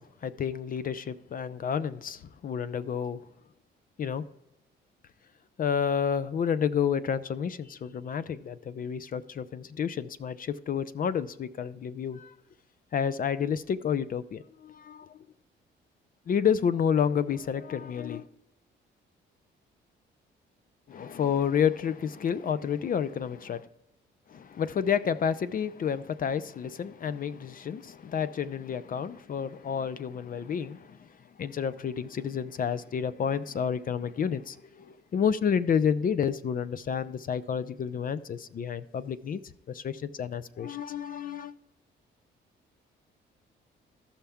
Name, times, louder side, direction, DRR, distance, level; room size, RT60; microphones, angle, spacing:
voice 1, 0.0-3.2 4.0-4.2 5.6-12.3 12.9-15.2 16.3-18.3 20.9-23.7 24.3-31.1 31.4-41.5, left 7 dB, 45° left, 0.5 m, -30 dB
15.0 x 5.7 x 3.5 m
cardioid pair, 90°, 20 cm